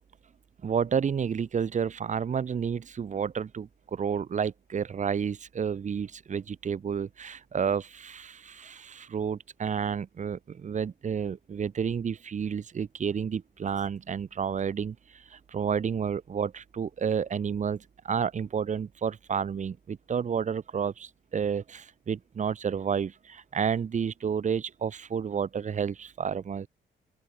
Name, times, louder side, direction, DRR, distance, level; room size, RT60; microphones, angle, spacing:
voice 1, 0.6-26.7, right 7 dB, 40° right, 0.9 m, -30 dB
open air
cardioid pair, 110°, 19 cm